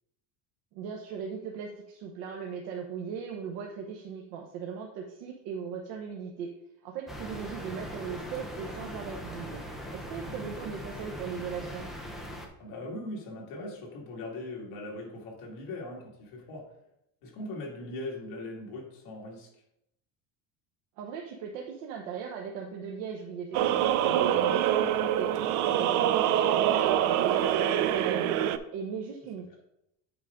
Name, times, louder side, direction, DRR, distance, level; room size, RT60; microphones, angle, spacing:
voice 1, 0.7-6.5 6.8-9.6 9.9-11.9 21.0-28.4 28.7-29.6, right 7 dB, 90° right, 1 dB, 1.0 m, -38 dB
sound 1, 7.1-12.5, equal, ahead, 0.5 m, -40 dB
voice 2, 12.6-16.7 17.2-19.5, left 2 dB, 60° left, -2 dB, 2.3 m, -40 dB
sound 2, 23.5-28.6, right 11 dB, 50° right, 0.4 m, -25 dB
8.3 x 4.9 x 3.7 m, 0.81 s
cardioid pair, 175°, 38 cm